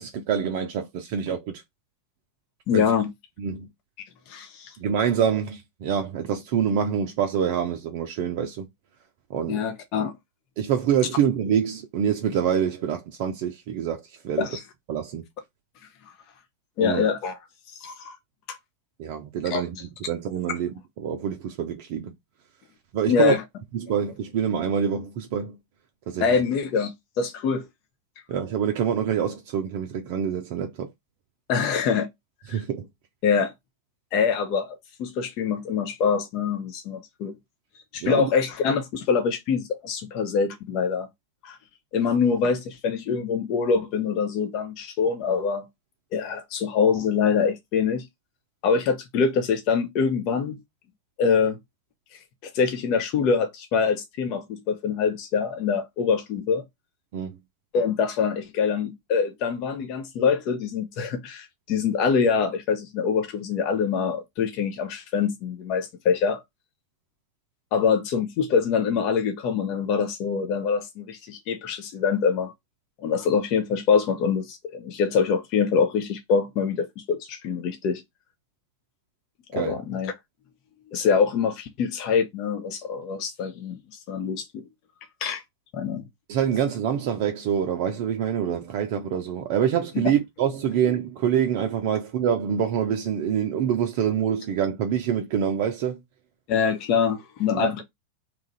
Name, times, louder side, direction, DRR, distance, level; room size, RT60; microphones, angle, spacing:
voice 1, 0.0-1.6 2.7-2.9 3.4-3.7 4.8-8.7 9.3-9.6 10.6-14.5 14.9-15.2 16.8-17.0 19.0-19.8 20.1-22.1 22.9-23.4 23.8-25.6 26.1-26.3 28.3-30.9 32.5-32.9 38.0-38.3 57.1-57.4 79.5-79.8 86.3-96.0 97.5-97.8, right 8 dB, 45° right, 0.5 m, -26 dB
voice 2, 2.7-3.1 4.3-4.7 9.5-10.1 14.4-14.6 16.8-17.4 17.8-18.2 18.5-18.6 19.5-19.6 23.1-23.4 26.2-27.7 31.5-32.1 32.5-32.6 33.2-33.5 34.1-37.4 37.9-41.1 41.4-41.6 41.9-45.7 46.1-48.0 48.6-50.6 51.2-51.6 52.4-56.6 57.7-66.4 67.7-72.5 73.0-78.0 79.5-80.1 80.9-83.8 84.1-84.6 85.2-85.4 85.7-86.0 96.5-97.8, left 6 dB, 40° left, 0.6 m, -24 dB
3.0 x 2.5 x 4.0 m
figure-of-eight pair, 90°, 0 cm